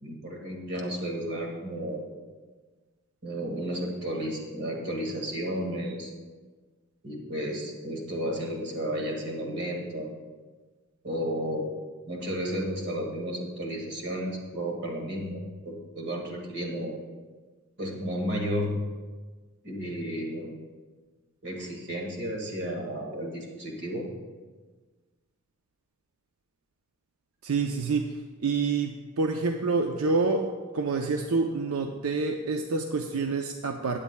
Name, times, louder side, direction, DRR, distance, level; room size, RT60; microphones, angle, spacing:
voice 1, 0.0-2.0 3.2-6.1 7.0-10.1 11.0-11.6 12.1-15.4 15.7-17.0 17.8-18.7 19.6-20.5 21.4-24.1, equal, 55° right, 0 dB, 1.8 m, -32 dB
voice 2, 27.4-28.1 28.4-34.0, right 4 dB, 85° right, 4 dB, 0.6 m, -27 dB
16.5 x 8.8 x 2.2 m, 1.4 s
head